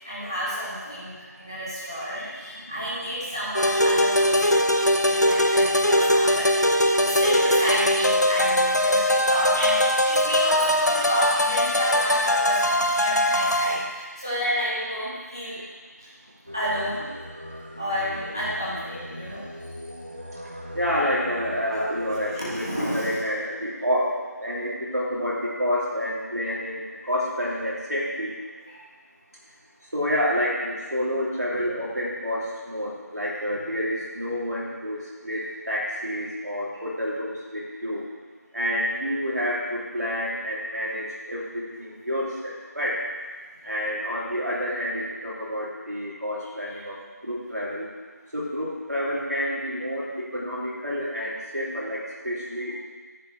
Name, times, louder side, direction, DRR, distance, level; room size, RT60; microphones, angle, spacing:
voice 1, 0.0-4.7 5.0-9.8 10.1-15.6 16.5-17.1 17.8-19.4 22.3-23.2 28.7-28.8, equal, 15° right, -11 dB, 1.3 m, -30 dB
sound 1, 3.6-13.9, left 1 dB, 75° left, 0.8 m, -21 dB
Singing, 16.5-23.2, equal, 30° right, 0.6 m, -39 dB
voice 2, 20.7-22.7 22.9-24.1 24.4-28.4 29.9-38.0 38.5-43.0 43.6-47.9 48.3-52.8, equal, 70° right, -6 dB, 2.8 m, -29 dB
10.0 x 8.9 x 3.3 m, 1.4 s
figure-of-eight pair, 175°, 9 cm